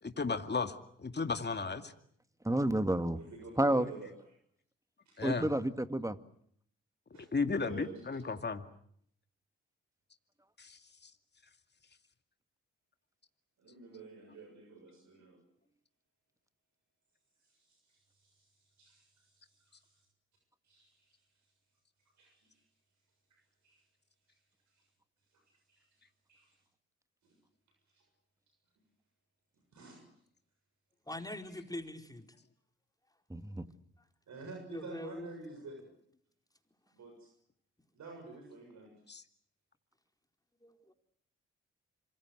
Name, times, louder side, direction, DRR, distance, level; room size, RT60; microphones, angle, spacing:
voice 1, 0.0-1.9 5.2-5.5 7.3-8.7 10.6-10.8 39.1-39.2, left 4 dB, 35° left, 8 dB, 2.4 m, -34 dB
voice 2, 2.4-3.2 3.6-3.9 5.2-6.2 33.3-33.6, right 1 dB, 10° right, 11 dB, 2.1 m, -30 dB
voice 3, 3.2-4.1 5.1-5.2 7.1-8.0 13.6-15.4 17.4-18.5 18.8-20.0 20.6-21.2 22.2-22.6 23.3-23.8 24.8-24.9 25.7-25.9 26.3-26.5 27.2-27.3 27.9-28.0 29.7-30.1 34.3-35.9 36.9-37.3 37.9-38.9, right 3 dB, 65° right, 2 dB, 7.1 m, -50 dB
voice 4, 31.1-32.4 34.7-35.3 40.6-40.9, left 1 dB, 10° left, 5 dB, 4.5 m, -43 dB
27.0 x 24.5 x 7.9 m, 0.67 s
hypercardioid pair, 45°, 30 cm